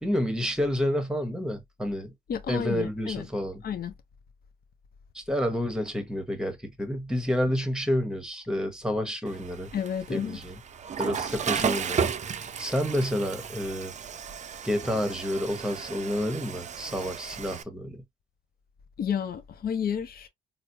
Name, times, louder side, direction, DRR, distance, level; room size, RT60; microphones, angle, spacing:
voice 1, 0.0-2.1 2.5-3.6 5.1-9.7 10.1-10.6 11.0-12.1 12.6-13.9 14.6-18.0, equal, 5° right, 1.1 m, -29 dB
voice 2, 2.3-3.3 3.6-3.9 9.7-10.4 19.0-20.3, left 8 dB, 50° left, 0.7 m, -31 dB
Water / Toilet flush, 9.3-17.6, right 7 dB, 35° right, 0.5 m, -34 dB
4.1 x 2.1 x 2.7 m
cardioid pair, 90°, 20 cm